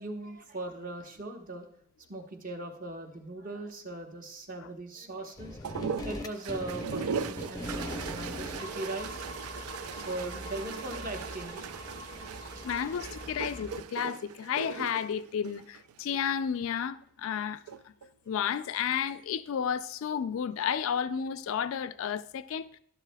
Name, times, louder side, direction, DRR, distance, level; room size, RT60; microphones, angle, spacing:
voice 1, 0.0-1.6 2.1-5.6 5.8-9.3 10.0-11.6 12.1-12.2 12.5-12.7 13.0-13.1, right 2 dB, 40° right, 1.0 m, -39 dB
sound 1, 5.4-13.8, left 2 dB, 15° left, 0.5 m, -41 dB
sound 2, 5.6-16.3 17.5-18.1, right 6 dB, 85° right, 0.4 m, -39 dB
voice 2, 12.6-17.6 17.9-18.0 18.3-22.7, left 8 dB, 65° left, 0.3 m, -32 dB
12.0 x 10.5 x 2.2 m
head